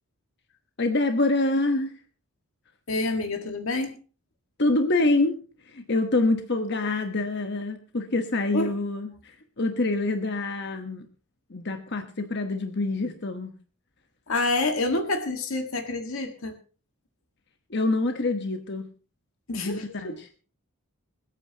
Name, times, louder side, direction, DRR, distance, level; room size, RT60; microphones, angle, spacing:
voice 1, 0.8-1.9 4.6-5.4 5.6-11.1 11.5-13.5 17.7-18.9 19.5-20.3, left 2 dB, 50° left, 6 dB, 1.2 m, -26 dB
voice 2, 2.9-3.9 8.5-8.7 14.3-16.6 19.5-20.2, left 2 dB, 65° left, 5 dB, 1.8 m, -28 dB
26.5 x 9.0 x 2.9 m, 0.38 s
head